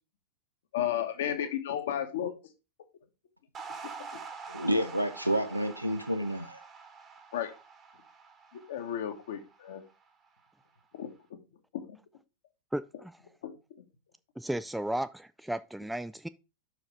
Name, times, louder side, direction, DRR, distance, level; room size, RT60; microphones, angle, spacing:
voice 1, 0.7-2.3 7.3-7.5 8.5-9.8 10.9-11.1 11.7-12.0 13.4-13.5, left 10 dB, 60° left, 1.3 m, -33 dB
sound 1, 3.5-10.0, right 5 dB, 25° right, 1.3 m, -46 dB
voice 2, 4.5-6.6, equal, 90° right, 0.7 m, -29 dB
voice 3, 12.7-13.2 14.4-16.3, right 1 dB, 5° right, 0.3 m, -34 dB
5.9 x 4.9 x 4.8 m
figure-of-eight pair, 90°, 0 cm